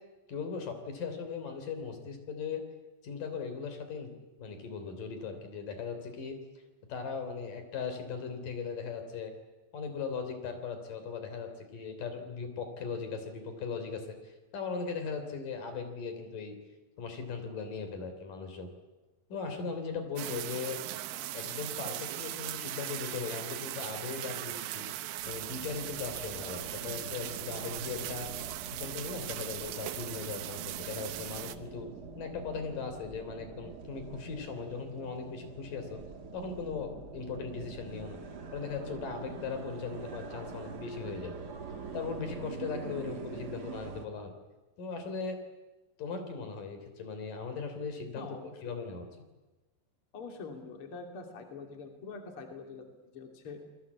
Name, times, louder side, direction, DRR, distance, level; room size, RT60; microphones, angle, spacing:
voice 1, 0.3-2.6 3.0-6.4 6.9-9.3 9.7-16.6 17.0-18.7 19.3-20.8 21.3-24.9 25.3-28.3 28.7-31.9 32.2-36.0 36.3-38.2 38.5-41.3 41.9-44.3 44.8-45.4 46.0-49.1, left 5 dB, 65° left, 7 dB, 5.0 m, -38 dB
sound 1, 20.2-31.6, right 14 dB, 80° right, 2.7 m, -39 dB
sound 2, 25.1-44.1, right 5 dB, 45° right, 1.3 m, -45 dB
voice 2, 48.2-48.8 50.1-52.9 53.1-53.6, left 4 dB, 40° left, 4 dB, 3.4 m, -44 dB
29.0 x 21.5 x 8.6 m, 1.1 s
omnidirectional pair, 4.2 m